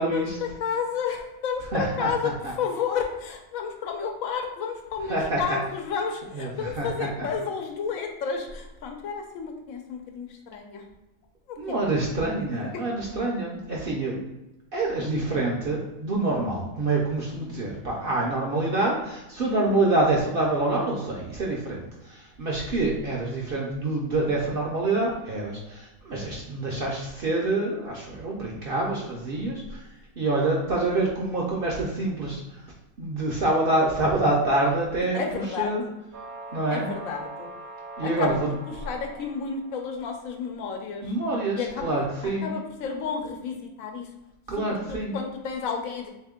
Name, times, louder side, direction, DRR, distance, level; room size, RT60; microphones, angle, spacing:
voice 1, 0.1-10.8 11.5-12.0 12.5-12.8 35.1-35.9 36.7-37.5 38.0-38.4 38.8-41.1 41.6-41.9 42.2-44.1 44.6-46.1, left 6 dB, 80° left, 3 dB, 1.0 m, -31 dB
voice 2, 1.7-2.1 5.1-5.6 6.4-7.3 11.6-14.2 14.7-29.8 30.2-32.6 33.0-35.2 35.6-35.8 36.5-36.9 38.0-38.5 41.0-42.5 44.5-45.2, right 2 dB, 55° right, -2 dB, 0.6 m, -26 dB
sound 1, 36.1-40.2, right 2 dB, 85° right, 1.1 m, -42 dB
3.4 x 2.8 x 3.6 m, 0.94 s
omnidirectional pair, 1.5 m